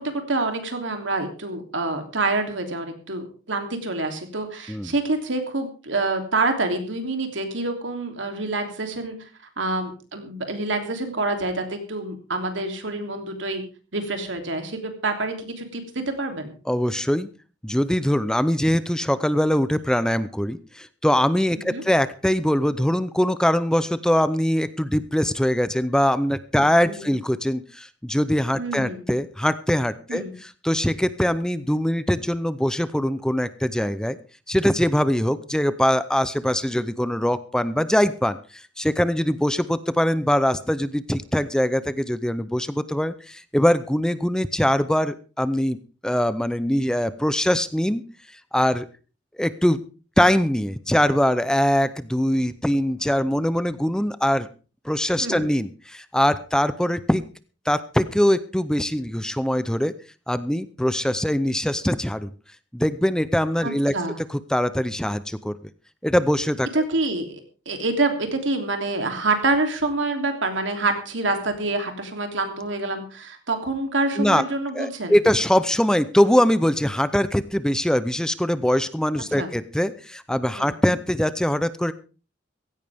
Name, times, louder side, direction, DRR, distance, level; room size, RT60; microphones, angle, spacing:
voice 1, 0.0-9.2 9.6-13.6 13.9-16.5 21.5-21.8 26.9-27.1 28.6-29.0 30.1-30.3 55.2-55.5 63.6-64.2 66.7-67.4 67.6-75.1 79.3-79.5 80.5-80.7, right 2 dB, 80° right, 5 dB, 3.1 m, -27 dB
voice 2, 16.7-17.3 17.6-34.2 34.5-45.8 46.0-48.0 48.5-48.9 49.4-49.8 50.2-54.5 54.8-57.2 57.7-59.9 60.3-62.3 62.7-63.9 64.3-65.5 66.0-66.7 74.2-74.4 74.7-81.9, equal, 5° left, 14 dB, 0.6 m, -22 dB
16.5 x 15.5 x 3.5 m, 0.35 s
head